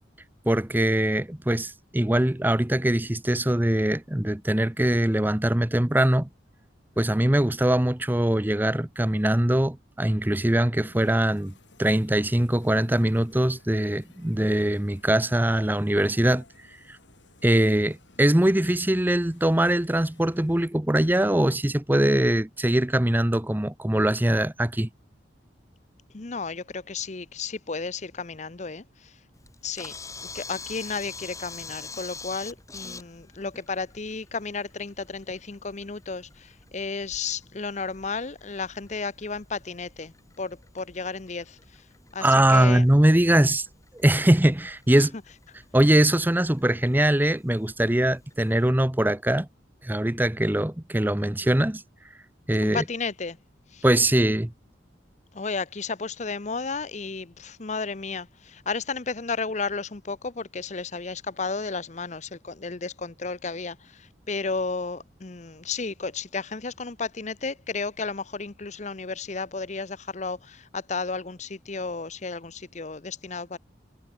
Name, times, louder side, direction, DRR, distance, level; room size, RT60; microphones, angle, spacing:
voice 1, 0.5-6.3 7.0-11.5 11.8-16.4 16.9-17.0 17.4-24.9 42.2-43.7 43.9-45.1 45.7-49.5 49.8-51.8 52.5-52.8 53.8-54.5, right 1 dB, 10° right, 0.7 m, -22 dB
sound 1, 10.8-20.6, left 2 dB, 75° left, 6.5 m, -57 dB
voice 2, 26.1-29.1 29.6-29.9 30.2-41.8 42.1-42.8 52.6-53.4 53.7-53.8 55.3-73.6, left 4 dB, 40° left, 0.8 m, -33 dB
Camera, 29.4-48.7, left 4 dB, 15° left, 4.2 m, -46 dB
head